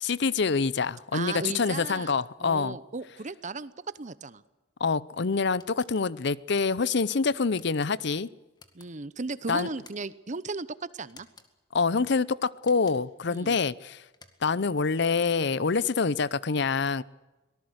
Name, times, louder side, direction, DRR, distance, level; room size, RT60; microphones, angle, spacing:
voice 1, 0.0-2.8 4.8-8.3 9.5-9.7 11.7-14.0 14.4-17.0, left 4 dB, 60° left, 0.7 m, -26 dB
voice 2, 1.1-4.4 8.7-11.3 13.3-13.6, right 3 dB, 40° right, 0.9 m, -36 dB
sound 1, 5.6-5.9 6.6-6.9 7.5-7.9 8.5-8.9 9.6-10.2 11.1-11.5 12.6-13.2 14.1-14.7, left 4 dB, 20° left, 2.0 m, -55 dB
24.5 x 18.5 x 8.0 m
head